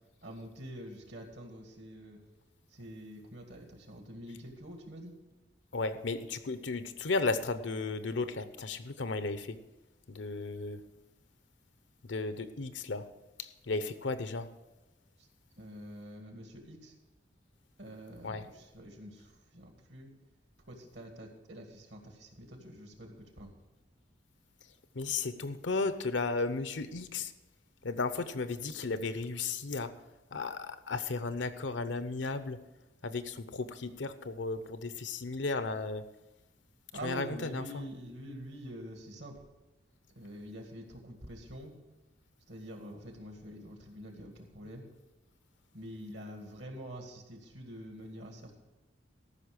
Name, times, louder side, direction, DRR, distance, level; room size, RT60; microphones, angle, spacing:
voice 1, 0.2-2.2 2.7-5.1 15.2-15.3 15.6-16.9 17.8-20.1 20.7-23.5 36.9-39.4 40.2-41.8 42.5-44.9 45.7-48.6, equal, 70° right, 3 dB, 2.1 m, -46 dB
voice 2, 5.7-9.6 10.1-10.8 12.0-13.1 13.4-14.5 18.2-18.4 24.9-27.3 27.8-29.9 30.3-32.6 33.0-36.0 36.9-37.8, left 3 dB, 75° left, 11 dB, 0.8 m, -34 dB
13.5 x 6.1 x 6.6 m, 1.1 s
head